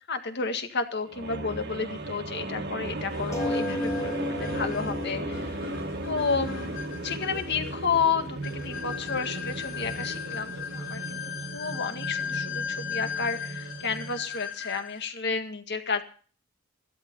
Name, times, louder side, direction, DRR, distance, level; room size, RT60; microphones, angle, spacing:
voice 1, 0.1-5.7 6.0-11.2 11.5-16.0, left 5 dB, 55° left, 7 dB, 1.9 m, -31 dB
sound 1, 1.1-14.3, right 2 dB, 55° right, 1.7 m, -36 dB
sound 2, 3.1-15.1, left 7 dB, 75° left, 2.6 m, -37 dB
sound 3, 3.3-8.3 9.1-9.2 9.5-9.6, left 1 dB, 15° left, 1.4 m, -34 dB
14.5 x 12.5 x 5.5 m, 0.42 s
head